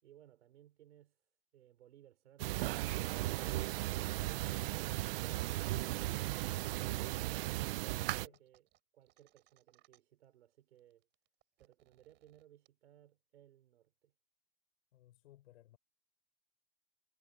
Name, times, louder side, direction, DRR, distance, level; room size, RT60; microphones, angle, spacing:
voice 1, 0.0-7.4 8.1-8.7 8.9-11.1 11.6-14.1, right 12 dB, 85° right, 6.0 m, -63 dB
sound 1, 2.4-8.3, right 17 dB, 55° right, 0.8 m, -36 dB
voice 2, 8.0-8.4 14.9-15.8, left 14 dB, 75° left, 6.2 m, -62 dB
sound 2, 8.2-10.2 10.5-10.6 10.8-12.7, right 17 dB, 35° right, 6.0 m, -70 dB
supercardioid pair, 155°, 33 cm